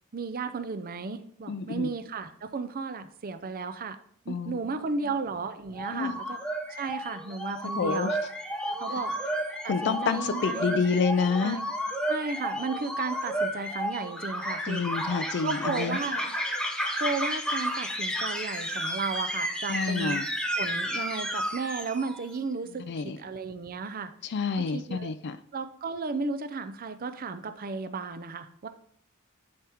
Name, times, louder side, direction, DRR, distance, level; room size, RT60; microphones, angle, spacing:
voice 1, 0.1-4.0 4.3-6.4 6.8-8.1 8.7-9.1 9.6-10.8 11.4-11.7 12.1-14.8 15.4-16.3 17.0-20.2 20.6-24.1 24.6-25.1 25.5-28.7, right 4 dB, 40° right, 10 dB, 0.6 m, -34 dB
voice 2, 1.5-1.9 4.3-4.5 5.9-6.1 7.8-8.2 8.9-9.0 9.7-11.6 14.7-16.0 19.7-20.3 22.9-23.2 24.2-25.4, left 5 dB, 50° left, 11 dB, 0.4 m, -28 dB
sound 1, 5.7-22.3, equal, 5° left, 0.8 m, -32 dB
10.5 x 4.5 x 3.5 m, 0.64 s
head